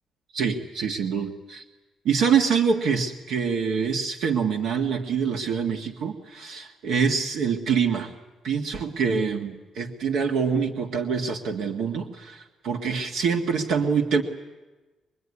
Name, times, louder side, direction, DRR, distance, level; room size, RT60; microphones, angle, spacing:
voice 1, 0.3-1.6 2.1-8.1 8.4-14.2, right 6 dB, 80° right, 3 dB, 1.8 m, -25 dB
24.0 x 23.5 x 9.8 m, 1.2 s
cardioid pair, 90°, 0 cm